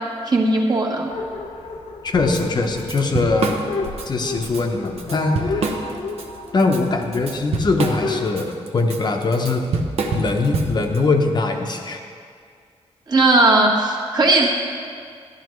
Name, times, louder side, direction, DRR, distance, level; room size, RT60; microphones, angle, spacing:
voice 1, 0.3-1.1 13.1-14.5, right 2 dB, 40° right, 0 dB, 1.4 m, -17 dB
sound 1, 1.1-8.3, left 3 dB, 70° left, 1.1 m, -31 dB
voice 2, 2.0-3.6 4.1-5.7 6.5-9.7 10.1-12.0, left 3 dB, 40° left, 3 dB, 0.9 m, -21 dB
Drum kit / Drum, 2.3-2.4 2.8-4.1 4.4-4.6 5.0-6.2 6.6-11.0, right 3 dB, 70° right, 0.9 m, -25 dB
13.0 x 11.5 x 3.1 m, 2.1 s
wide cardioid pair, 140°, 11 cm